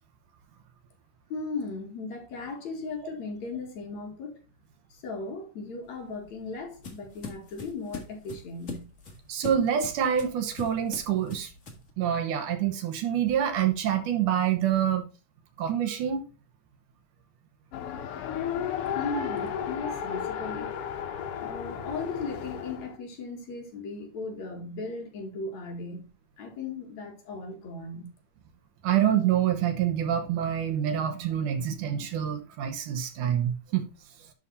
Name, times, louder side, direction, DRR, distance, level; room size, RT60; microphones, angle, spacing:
voice 1, 1.3-4.4 4.9-8.9 18.9-20.8 21.4-26.1 26.4-28.1, left 3 dB, 60° left, 3.0 m, -37 dB
sound 1, 5.9-11.9, left 4 dB, 40° left, 1.2 m, -42 dB
voice 2, 9.3-11.5 12.0-15.1 15.6-16.3 28.8-33.9, right 9 dB, 70° right, 2.5 m, -26 dB
Race car auto racing, 17.7-23.0, left 8 dB, 90° left, 1.2 m, -33 dB
11.0 x 4.2 x 4.0 m
omnidirectional pair, 3.8 m